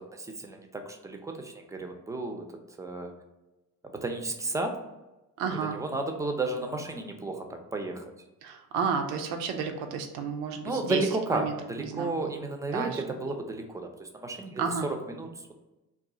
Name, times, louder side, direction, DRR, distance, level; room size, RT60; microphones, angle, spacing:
voice 1, 0.0-2.5 2.8-3.1 3.8-4.8 5.6-8.0 10.6-15.5, right 2 dB, 5° right, 5 dB, 0.4 m, -33 dB
voice 2, 5.4-5.8 8.4-11.0 11.3-12.4 12.7-13.0 14.6-14.9, right 6 dB, 80° right, 5 dB, 0.6 m, -32 dB
2.4 x 2.3 x 3.9 m, 1.0 s
hypercardioid pair, 50°, 46 cm